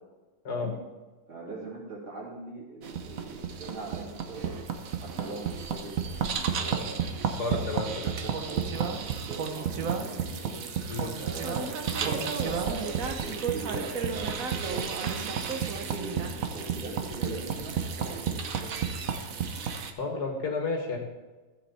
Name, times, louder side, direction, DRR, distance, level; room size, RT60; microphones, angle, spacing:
voice 1, 0.5-0.8 1.3-4.5 5.0-6.1 6.6-7.0 7.5-10.6 11.1-13.0 13.2-15.3 15.8-18.7, right 2 dB, 75° right, -5 dB, 4.0 m, -41 dB
sound 1, 2.8-19.9, right 6 dB, 55° right, 1.0 m, -32 dB
voice 2, 7.4-8.1 10.9-11.1 20.0-21.0, left 3 dB, 50° left, 1 dB, 2.2 m, -31 dB
13.5 x 7.7 x 4.2 m, 1.2 s
omnidirectional pair, 2.3 m